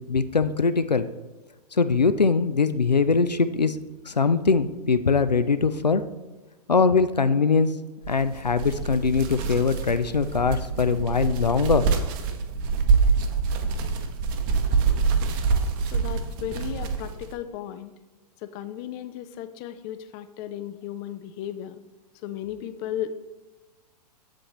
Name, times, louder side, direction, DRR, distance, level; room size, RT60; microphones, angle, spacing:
voice 1, 0.1-1.1 1.7-3.8 4.1-6.0 6.7-7.7 8.1-11.9, left 4 dB, 85° left, 12 dB, 0.5 m, -22 dB
sound 1, 8.0-17.3, right 5 dB, 35° right, 0.8 m, -25 dB
voice 2, 15.9-17.9 18.4-21.8 22.2-23.1, left 11 dB, 25° left, 11 dB, 0.4 m, -35 dB
7.5 x 7.1 x 3.1 m, 1.2 s
figure-of-eight pair, 110°, 21 cm